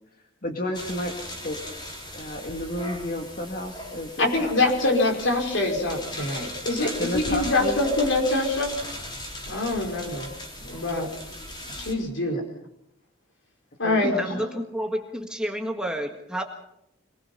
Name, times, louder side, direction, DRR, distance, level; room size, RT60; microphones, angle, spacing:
voice 1, 0.4-1.6 2.1-4.7 6.8-7.8 12.3-12.4 13.8-14.5, left 1 dB, 45° left, 2 dB, 2.2 m, -32 dB
sound 1, 0.7-11.9, left 1 dB, 20° left, 3.9 m, -38 dB
voice 2, 4.2-8.7 9.5-10.3 10.6-11.1 11.7-12.4 13.8-14.4, left 2 dB, 70° left, 2 dB, 5.4 m, -24 dB
voice 3, 14.0-16.4, equal, 5° right, 2 dB, 1.6 m, -30 dB
25.5 x 20.0 x 5.6 m, 0.79 s
head